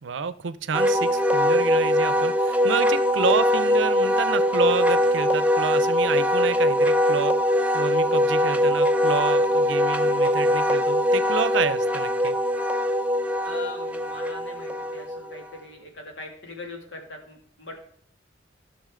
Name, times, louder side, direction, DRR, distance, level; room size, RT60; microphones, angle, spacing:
voice 1, 0.0-7.3 7.7-12.4, right 5 dB, 90° right, 15 dB, 0.5 m, -29 dB
Wind instrument woodwind instrument, 0.7-15.4, equal, 10° right, 0.5 m, -22 dB
voice 2, 13.4-17.8, left 3 dB, 85° left, 1 dB, 2.2 m, -41 dB
15.0 x 6.1 x 3.7 m, 0.65 s
head